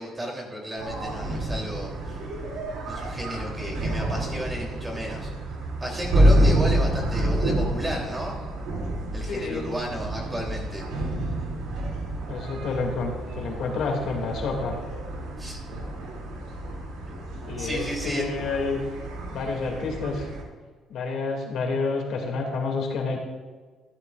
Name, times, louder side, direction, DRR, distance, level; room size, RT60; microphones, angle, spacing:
voice 1, 0.0-2.2 2.8-5.3 5.8-8.4 9.1-10.8 15.4-15.6 17.6-18.3, equal, 15° right, -1 dB, 3.2 m, -33 dB
sound 1, 0.8-20.4, right 1 dB, 85° right, 2.8 m, -28 dB
voice 2, 9.3-9.7 12.3-14.8 17.5-18.8 19.3-20.3 20.9-23.2, left 4 dB, 70° left, 0 dB, 2.4 m, -29 dB
14.0 x 12.5 x 2.5 m, 1.4 s
cardioid pair, 120°, 0 cm